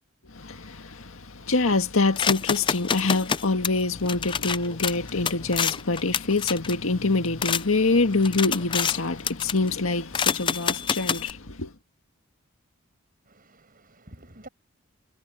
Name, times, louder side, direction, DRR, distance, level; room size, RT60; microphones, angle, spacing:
voice 1, 0.3-11.7, left 3 dB, 85° left, 1.9 m, -25 dB
sound 1, 2.2-7.6 8.0-9.0 9.3-9.7 10.1-11.3, left 7 dB, 25° left, 0.3 m, -28 dB
voice 2, 13.3-14.5, right 1 dB, 45° right, 6.6 m, -49 dB
head